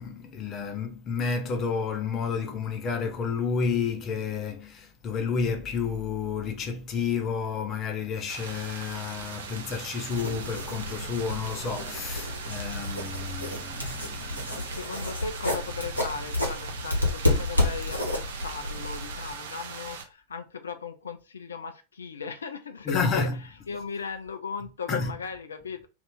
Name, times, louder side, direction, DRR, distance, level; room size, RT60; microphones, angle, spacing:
voice 1, 0.0-14.7 22.8-23.5 24.9-25.2, left 5 dB, 30° left, 0.7 m, -30 dB
sound 1, 8.3-20.0, right 6 dB, 60° right, 0.5 m, -40 dB
sound 2, 10.1-19.3, left 2 dB, 90° right, 0.9 m, -31 dB
voice 2, 14.5-23.3 23.7-25.9, left 5 dB, 70° left, 0.3 m, -37 dB
2.6 x 2.4 x 3.5 m
figure-of-eight pair, 90°, 0 cm